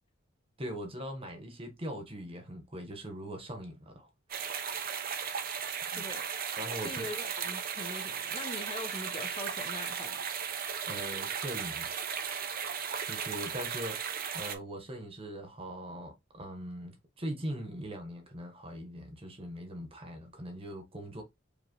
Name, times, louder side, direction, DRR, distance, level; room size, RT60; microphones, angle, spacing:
voice 1, 0.6-4.1 5.9-6.0 6.6-7.1 10.9-11.9 13.0-21.2, equal, 30° right, 1.2 m, -41 dB
sound 1, 4.3-14.5, right 7 dB, 50° right, 0.7 m, -36 dB
voice 2, 5.9-6.3 6.8-10.2, left 2 dB, 25° left, 0.7 m, -42 dB
5.1 x 2.9 x 3.0 m
head